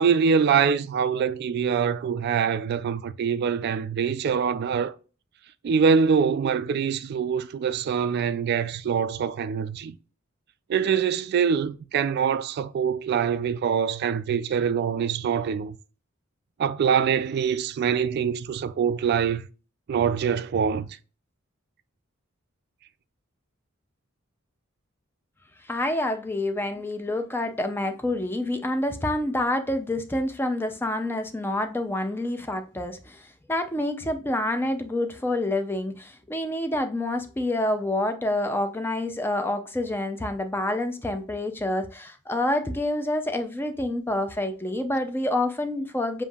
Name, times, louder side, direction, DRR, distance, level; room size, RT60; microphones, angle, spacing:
voice 1, 0.0-4.9 5.6-10.0 10.7-15.8 16.6-19.5 19.9-20.9, right 6 dB, 50° right, 0.3 m, -24 dB
voice 2, 25.7-46.2, left 1 dB, 10° left, 0.4 m, -27 dB
6.9 x 2.6 x 2.3 m
head